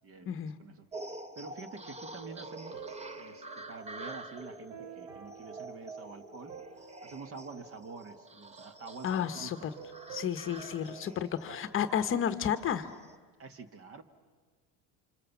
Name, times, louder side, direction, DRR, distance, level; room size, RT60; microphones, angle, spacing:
voice 1, 0.0-0.9 1.3-2.8 3.2-6.5 7.0-9.7 13.4-14.0, right 4 dB, 35° right, 10 dB, 1.6 m, -47 dB
sound 1, 0.9-13.2, right 2 dB, 15° right, 1.0 m, -47 dB
sound 2, 2.2-8.8 9.4-12.0, right 8 dB, 85° right, 2.9 m, -50 dB
voice 2, 9.0-9.6 10.1-12.9, left 8 dB, 35° left, 10 dB, 1.0 m, -32 dB
30.0 x 26.5 x 7.2 m, 1.5 s
cardioid pair, 150°, 37 cm